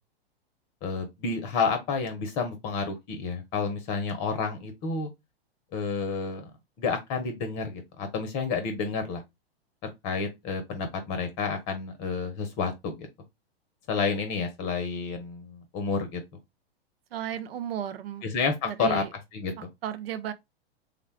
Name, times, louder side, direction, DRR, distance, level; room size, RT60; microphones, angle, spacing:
voice 1, 0.8-5.1 5.7-6.5 6.8-9.2 9.8-13.1 13.9-16.2 18.2-19.0 19.3-19.5, left 5 dB, 35° left, 0.7 m, -30 dB
voice 2, 17.1-18.3 18.6-19.1 19.6-20.3, right 10 dB, 70° right, 0.6 m, -34 dB
3.6 x 2.2 x 3.3 m
hypercardioid pair, 115°, 31 cm